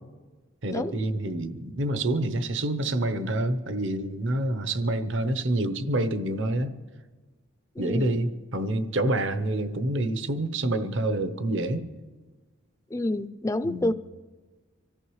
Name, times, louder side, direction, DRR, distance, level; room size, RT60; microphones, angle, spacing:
voice 1, 0.6-6.7 7.8-11.9 13.6-13.9, right 1 dB, 60° right, 10 dB, 0.9 m, -27 dB
voice 2, 7.8-8.2 12.9-13.9, left 1 dB, 15° left, 14 dB, 0.4 m, -28 dB
25.0 x 14.5 x 3.2 m, 1.3 s
head